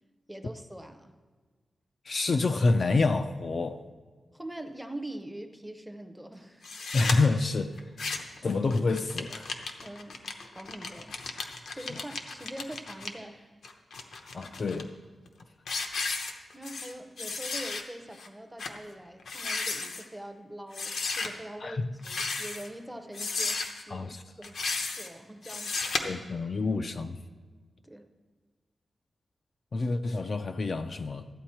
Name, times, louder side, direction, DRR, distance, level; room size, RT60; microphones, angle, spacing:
voice 1, 0.3-1.1 4.3-6.7 9.8-10.3 10.5-11.2 11.7-13.5 16.5-24.1 24.4-24.6 25.0-25.9 27.8-28.1, right 1 dB, 5° right, 0.6 m, -43 dB
voice 2, 2.1-3.8 6.9-7.8 8.4-9.5 14.3-14.9 21.6-21.9 23.9-24.2 26.0-27.2 29.7-31.3, left 3 dB, 40° left, 0.4 m, -28 dB
sound 1, 6.6-7.2 7.8-8.4 8.7-13.1 13.6-14.8 15.3-15.4 15.7-16.9 17.2-17.8 18.2-18.3 18.6-18.8 19.2-20.0 20.7-21.3 22.0-22.7 23.1-23.8 24.4-25.1 25.4-26.0, left 4 dB, 70° left, 0.8 m, -34 dB
13.0 x 8.9 x 4.3 m
wide cardioid pair, 180°, 0 cm